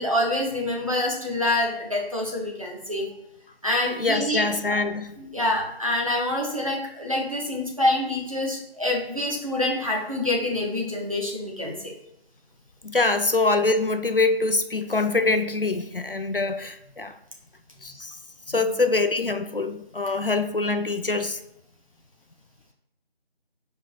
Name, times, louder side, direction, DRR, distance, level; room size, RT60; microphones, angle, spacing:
voice 1, 0.0-3.1 3.6-4.8 5.2-11.9 18.5-18.7, left 1 dB, 35° right, 1.0 m, -26 dB
voice 2, 4.0-5.2 12.8-17.1 17.8-18.1 18.5-21.4, left 3 dB, 60° left, 0.5 m, -24 dB
4.6 x 4.4 x 4.7 m
figure-of-eight pair, 175°, 31 cm